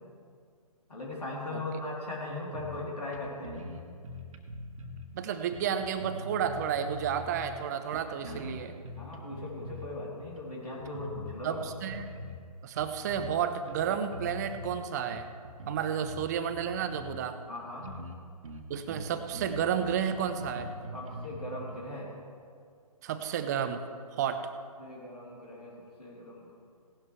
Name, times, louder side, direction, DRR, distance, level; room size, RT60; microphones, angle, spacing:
voice 1, 0.9-3.7 8.2-8.4 9.0-11.6 17.5-17.9 20.9-22.1 24.8-25.7 26.0-26.5, left 2 dB, 85° left, -5 dB, 3.5 m, -39 dB
sound 1, 2.5-2.9 3.1-3.2 3.4-5.1 5.5-7.6 7.9-9.9 10.2-10.4 10.8-12.4 12.8-13.4 13.7-14.7 15.1-17.2 17.5-17.6 17.8-18.2 18.4-21.7, left 1 dB, 55° right, 1.5 m, -43 dB
voice 2, 5.1-8.7 11.4-12.0 12.6-15.3 15.7-17.4 18.7-20.7 23.0-23.8 24.2-24.5, right 8 dB, 25° right, 9 dB, 0.6 m, -31 dB
17.5 x 12.0 x 3.3 m, 2.2 s
figure-of-eight pair, 140°, 20 cm